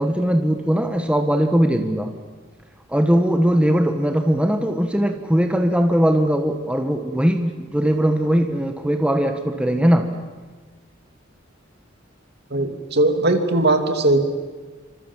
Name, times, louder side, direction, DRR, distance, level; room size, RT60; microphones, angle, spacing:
voice 1, 0.0-2.1 2.9-10.1, equal, 5° right, 5 dB, 1.5 m, -20 dB
voice 2, 12.5-14.2, right 2 dB, 55° right, 6 dB, 2.6 m, -19 dB
28.0 x 26.0 x 7.4 m, 1.4 s
head